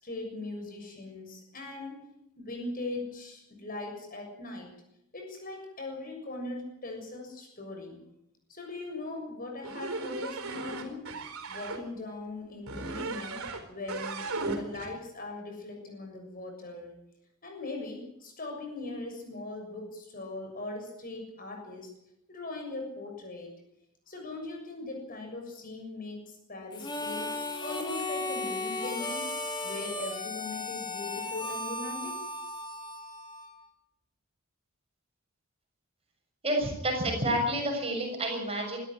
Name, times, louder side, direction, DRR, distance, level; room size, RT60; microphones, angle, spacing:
voice 1, 0.0-2.0 2.4-4.7 5.1-8.0 8.5-11.0 11.5-16.9 17.4-21.9 22.3-23.5 24.1-29.3 29.6-32.3, left 2 dB, 40° left, 2 dB, 6.9 m, -40 dB
sound 1, 9.6-11.8 12.7-13.6 13.9-14.9, right 3 dB, 70° right, 4.3 m, -36 dB
Harmonica, 26.7-33.6, left 2 dB, 20° left, 3.4 m, -35 dB
voice 2, 36.4-38.8, right 1 dB, 25° right, 2 dB, 6.8 m, -29 dB
25.0 x 13.5 x 9.2 m, 0.80 s
head